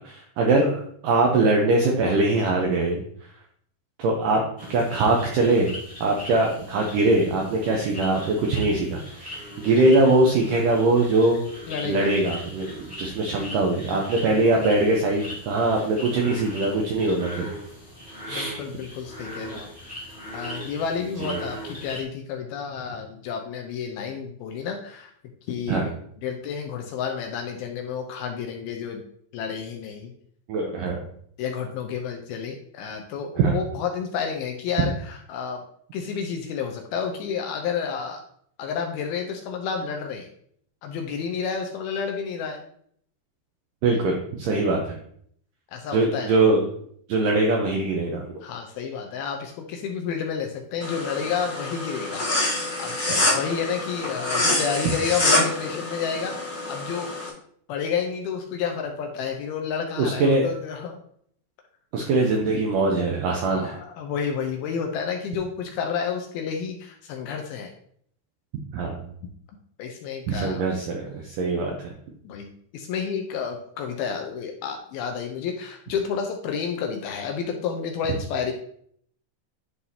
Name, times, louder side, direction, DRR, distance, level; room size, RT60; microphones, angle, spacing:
voice 1, 0.0-3.0 4.0-4.4 4.7-5.7 6.0-11.4 11.9-17.5 18.3-18.6 21.2-21.4 25.7-25.9 30.5-31.0 33.4-33.6 43.8-45.0 45.9-46.6 47.1-48.3 53.1-53.2 60.0-60.5 61.9-63.7 68.7-69.1 70.3-71.7, right 2 dB, 85° right, 1 dB, 1.9 m, -22 dB
sound 1, 4.6-22.0, equal, 5° left, 1.5 m, -40 dB
voice 2, 11.7-12.1 18.3-19.7 20.0-25.1 25.5-29.0 29.3-30.1 31.4-35.6 35.9-38.2 38.6-40.3 40.8-42.6 45.7-46.4 48.4-56.3 56.7-57.2 57.7-61.0 63.5-67.7 69.8-70.6 72.2-78.5, left 6 dB, 75° left, 3 dB, 2.4 m, -30 dB
sound 2, 50.8-57.3, left 2 dB, 35° left, 0.9 m, -26 dB
11.0 x 4.1 x 2.8 m, 0.63 s
omnidirectional pair, 4.8 m